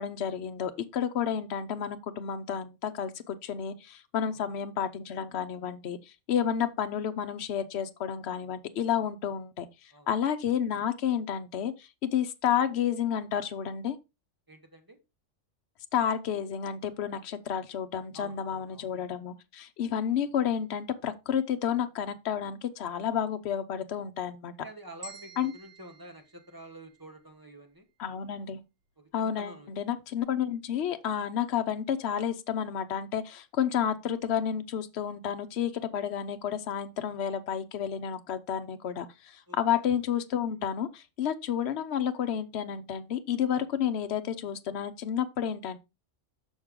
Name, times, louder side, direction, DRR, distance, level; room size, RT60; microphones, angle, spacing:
voice 1, 0.0-6.0 6.3-9.7 10.1-14.0 15.9-24.5 25.4-25.5 28.0-28.6 29.1-45.8, left 8 dB, 60° left, 1.0 m, -31 dB
voice 2, 14.5-15.0 18.1-18.9 24.6-27.9 29.0-29.7 39.5-39.9, right 1 dB, 20° right, 1.2 m, -48 dB
sound 1, 25.0-27.2, right 2 dB, 80° right, 2.7 m, -50 dB
6.4 x 6.4 x 3.6 m
omnidirectional pair, 1.3 m